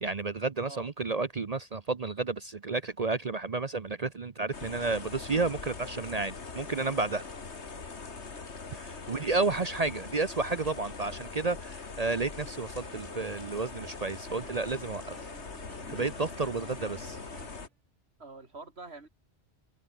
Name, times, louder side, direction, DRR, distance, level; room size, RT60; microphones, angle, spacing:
voice 1, 0.0-7.2 8.7-15.3 15.9-17.0, right 3 dB, 40° right, 0.8 m, -31 dB
sound 1, 4.5-17.7, left 4 dB, 75° left, 2.5 m, -42 dB
voice 2, 8.8-9.3 16.6-17.0 18.2-19.1, right 3 dB, 65° right, 3.1 m, -47 dB
sound 2, 12.8-17.7, right 4 dB, 90° right, 2.8 m, -53 dB
omnidirectional pair, 1.2 m